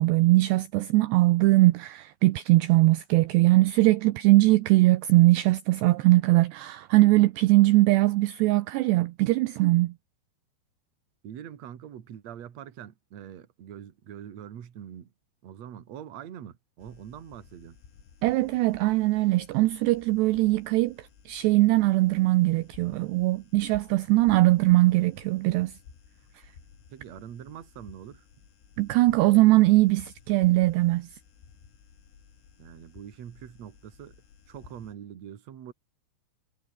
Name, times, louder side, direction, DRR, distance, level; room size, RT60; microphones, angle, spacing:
voice 1, 0.0-9.9 18.2-25.7 28.8-31.1, right 19 dB, 80° right, 2.6 m, -21 dB
voice 2, 11.2-15.1 15.4-17.8 26.9-28.3 32.6-34.2 34.5-35.7, right 9 dB, 50° right, 2.4 m, -43 dB
sound 1, 16.8-34.9, left 7 dB, 85° left, 7.7 m, -55 dB
omnidirectional pair, 5.6 m